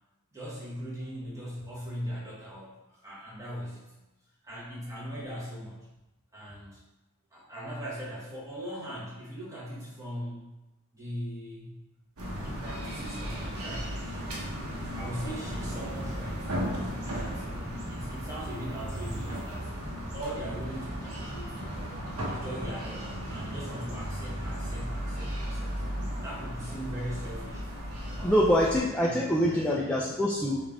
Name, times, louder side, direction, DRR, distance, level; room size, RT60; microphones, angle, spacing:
voice 1, 0.3-3.9 4.4-5.9 6.3-6.8 7.3-10.5 10.9-11.7 12.4-14.0 14.8-16.6 17.0-19.7 20.1-21.6 22.3-25.7 26.2-27.6 28.1-28.4 29.0-30.0, equal, 15° right, -7 dB, 1.2 m, -40 dB
sound 1, 12.2-28.8, equal, 75° right, 0.9 m, -35 dB
voice 2, 28.1-30.6, equal, 5° left, -4 dB, 0.3 m, -25 dB
5.1 x 2.5 x 3.5 m, 1.0 s
head